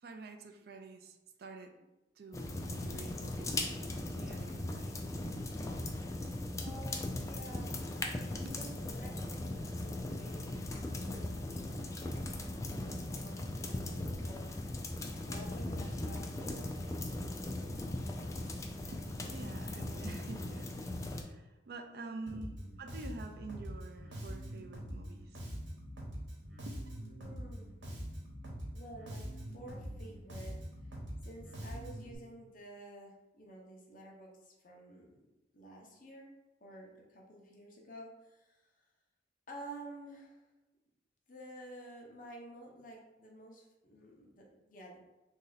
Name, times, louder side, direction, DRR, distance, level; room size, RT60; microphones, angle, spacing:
voice 1, 0.0-1.9 2.2-4.9 6.7-6.8 8.4-8.6 18.9-20.8 21.1-25.4 26.7-26.8, right 3 dB, 55° right, 6 dB, 0.4 m, -48 dB
sound 1, 2.3-21.2, left 1 dB, 15° left, 0.3 m, -39 dB
voice 2, 6.6-7.8 8.5-12.5 12.8-14.4 15.2-16.6 17.5-17.9 21.9-22.4 27.2-27.7 28.7-29.3 29.5-30.5 30.8-30.9 31.2-35.2 35.5-38.6 39.5-40.4 41.3-45.0, right 1 dB, 50° left, -1 dB, 0.8 m, -51 dB
Bass guitar, 22.3-32.1, equal, 85° right, 1.1 m, -44 dB
3.1 x 2.7 x 3.9 m, 1.0 s
head